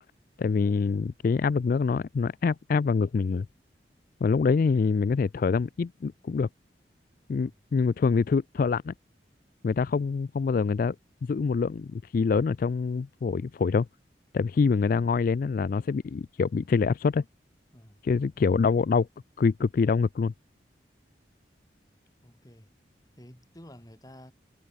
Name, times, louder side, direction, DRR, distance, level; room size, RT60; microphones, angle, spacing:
voice 1, 0.4-3.5 4.2-6.5 7.3-8.9 9.6-11.0 11.2-13.9 14.3-17.2 18.0-19.1 19.4-20.3, left 5 dB, 50° left, 0.3 m, -25 dB
voice 2, 22.2-22.7 23.2-24.3, equal, 20° left, 5.4 m, -50 dB
head